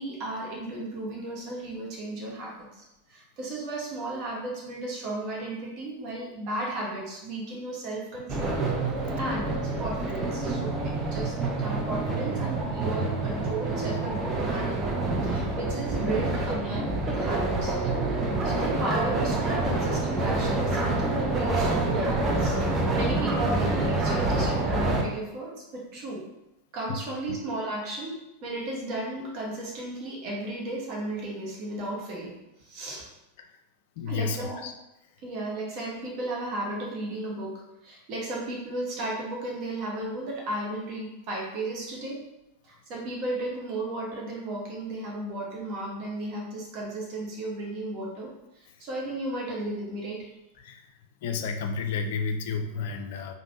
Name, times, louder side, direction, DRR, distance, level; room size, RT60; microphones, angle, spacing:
voice 1, 0.0-8.6 9.2-17.8 18.1-26.2 26.7-33.1 34.1-34.6 35.2-42.2 42.6-48.3 48.5-50.3, right 2 dB, 40° right, -2 dB, 1.3 m, -35 dB
sound 1, 8.3-25.0, right 2 dB, 20° right, 0.6 m, -27 dB
voice 2, 34.0-34.7 50.6-50.9 51.2-53.3, left 5 dB, 50° left, 6 dB, 0.4 m, -31 dB
5.0 x 2.5 x 3.0 m, 0.94 s
figure-of-eight pair, 90°, 0 cm